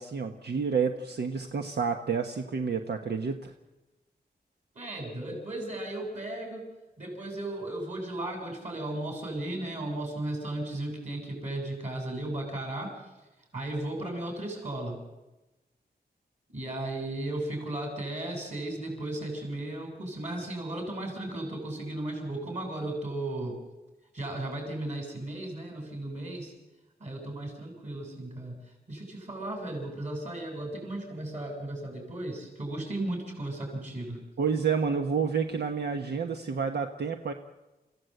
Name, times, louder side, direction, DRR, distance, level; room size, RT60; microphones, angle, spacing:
voice 1, 0.0-3.5 34.4-37.3, right 6 dB, 80° right, 5 dB, 1.3 m, -29 dB
voice 2, 4.7-6.7 7.0-13.1 13.5-15.0 16.5-23.6 24.1-26.5 27.0-34.2, right 1 dB, 45° right, 2 dB, 7.3 m, -35 dB
30.0 x 16.0 x 8.0 m, 1.1 s
wide cardioid pair, 175°, 17 cm